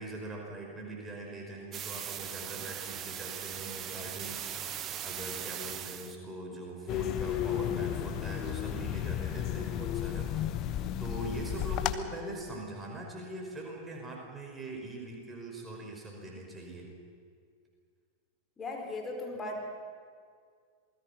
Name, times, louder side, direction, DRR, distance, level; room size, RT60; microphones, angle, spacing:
voice 1, 0.0-4.4 4.7-10.3 10.7-16.9, right 2 dB, 15° right, -1 dB, 5.3 m, -42 dB
sound 1, 1.7-6.2, right 9 dB, 30° right, 1.3 m, -39 dB
sound 2, 6.9-12.0, left 11 dB, 35° left, 1.1 m, -33 dB
voice 2, 18.6-19.6, left 2 dB, 20° left, 1 dB, 4.4 m, -37 dB
27.0 x 20.5 x 5.9 m, 2.1 s
figure-of-eight pair, 90°, 0 cm